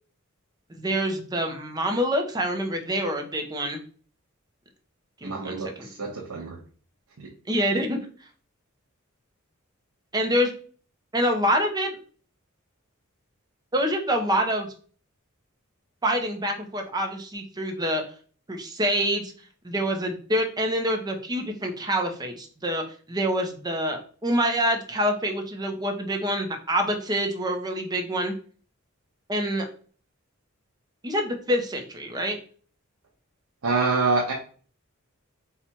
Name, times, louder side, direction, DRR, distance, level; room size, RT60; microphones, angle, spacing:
voice 1, 0.7-3.8 5.2-5.9 7.5-8.0 10.1-10.5 11.1-11.9 13.7-14.7 16.0-18.0 18.5-19.3 19.6-22.8 23.1-28.3 29.3-29.6 31.0-32.4, equal, 20° right, 3 dB, 0.7 m, -26 dB
voice 2, 5.2-6.6 7.2-7.3 33.6-34.3, right 3 dB, 85° right, -1 dB, 0.7 m, -26 dB
4.3 x 2.4 x 4.4 m, 0.42 s
head